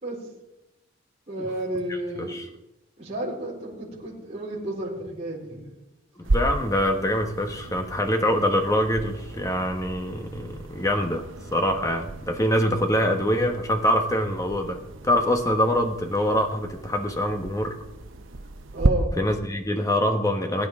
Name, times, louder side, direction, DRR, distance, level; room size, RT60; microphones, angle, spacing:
voice 1, 1.3-2.5 3.0-5.6 18.7-19.1, right 1 dB, 30° right, -8 dB, 4.1 m, -31 dB
voice 2, 6.2-14.8 15.0-17.8 19.2-20.7, equal, 15° left, 5 dB, 1.1 m, -24 dB
sound 1, 6.2-18.9, right 2 dB, 65° right, 0.8 m, -33 dB
21.0 x 9.8 x 3.7 m, 0.94 s
head